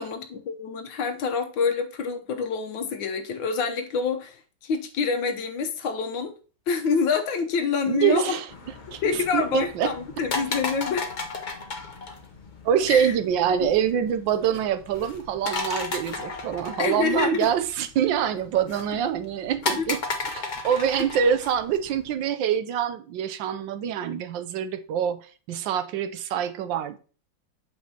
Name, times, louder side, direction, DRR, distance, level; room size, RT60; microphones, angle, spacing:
voice 1, 0.0-4.4 4.6-6.3 6.7-8.3 9.0-11.1 12.9-13.1 13.6-13.7 16.8-17.5 19.8-19.9, left 5 dB, 75° left, 1.7 m, -27 dB
voice 2, 7.9-8.5 8.9-9.9 12.6-20.0 20.3-27.0, right 8 dB, 75° right, 1.3 m, -25 dB
sound 1, 8.5-22.1, left 3 dB, 45° left, 0.6 m, -35 dB
8.6 x 7.2 x 2.9 m
omnidirectional pair, 2.1 m